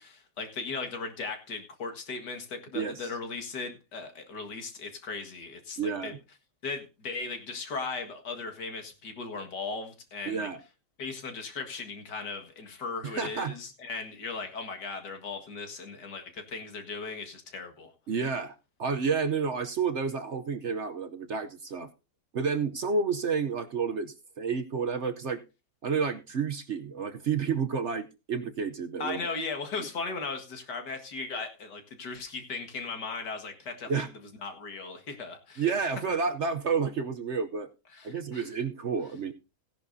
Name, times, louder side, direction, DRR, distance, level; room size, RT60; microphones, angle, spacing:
voice 1, 0.0-6.1 6.6-10.5 11.0-17.9 29.0-34.0 34.4-35.7 37.9-38.5, left 4 dB, 80° left, 2.4 m, -37 dB
voice 2, 2.7-3.1 5.8-6.2 10.3-10.6 13.0-13.6 18.1-21.9 22.3-25.4 25.8-29.2 29.8-29.9 33.9-34.1 35.6-37.7 38.0-39.3, right 5 dB, 50° right, 0.9 m, -30 dB
16.5 x 10.5 x 2.7 m
omnidirectional pair, 1.8 m